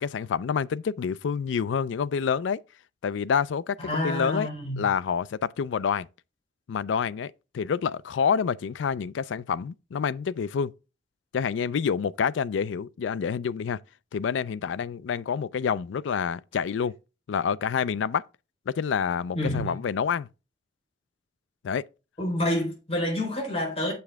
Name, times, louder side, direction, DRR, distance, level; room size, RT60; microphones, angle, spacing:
voice 1, 0.0-2.6 3.0-3.8 4.0-4.5 4.8-6.1 6.7-10.7 11.3-13.8 14.1-16.9 17.3-18.2 18.7-20.3 21.6-21.8, left 6 dB, 85° left, 0.4 m, -27 dB
voice 2, 3.8-4.8 19.3-19.7 22.2-23.9, left 1 dB, 35° left, 4.0 m, -28 dB
7.3 x 6.9 x 3.4 m
head